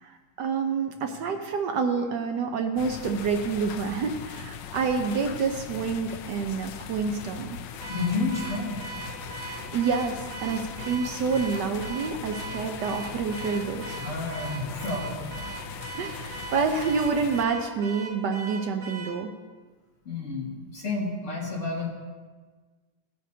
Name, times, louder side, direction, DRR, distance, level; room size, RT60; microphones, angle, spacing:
voice 1, 0.0-7.6 9.5-14.0 15.9-19.3, right 5 dB, 70° right, 5 dB, 1.2 m, -28 dB
sound 1, 2.8-17.4, left 7 dB, 80° left, 1.2 m, -39 dB
Car / Alarm, 7.8-19.2, right 4 dB, 85° right, 1.8 m, -40 dB
voice 2, 7.9-8.8 14.0-15.6 20.0-21.9, left 3 dB, 40° left, -5 dB, 2.5 m, -30 dB
17.0 x 8.5 x 2.7 m, 1.4 s
omnidirectional pair, 2.0 m